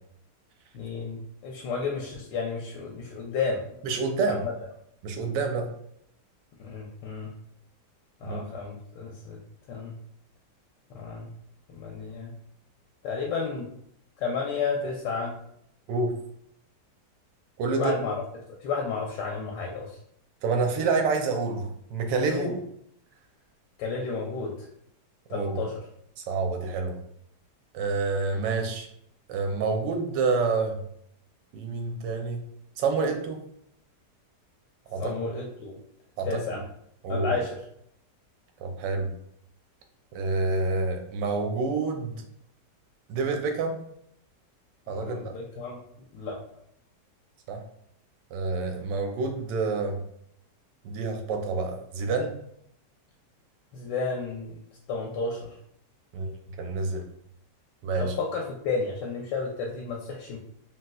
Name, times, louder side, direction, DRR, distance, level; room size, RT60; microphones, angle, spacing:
voice 1, 0.7-3.6 4.3-4.5 6.6-7.3 8.2-9.4 9.7-9.9 10.9-11.3 11.7-12.3 13.0-13.7 14.2-15.3 17.7-18.1 18.6-20.0 22.3-22.5 23.8-24.7 25.3-25.7 35.0-35.8 36.2-36.6 37.1-37.6 44.9-45.8 46.1-46.4 53.7-54.6 54.9-55.6 58.0-60.4, left 4 dB, 90° left, -1 dB, 1.2 m, -32 dB
voice 2, 3.8-4.4 5.0-5.7 8.2-8.4 15.9-16.1 17.6-18.0 20.4-22.6 25.3-25.6 26.2-27.0 27.7-28.9 29.3-30.8 31.5-32.4 32.8-33.4 34.9-35.1 36.2-36.4 37.0-37.3 38.6-39.1 40.1-42.2 43.1-43.8 44.9-45.3 47.5-47.6 48.3-50.0 50.8-52.3 56.1-57.1 57.8-58.1, right 4 dB, 90° right, 4 dB, 1.2 m, -28 dB
3.1 x 2.9 x 2.2 m, 0.71 s
omnidirectional pair, 1.8 m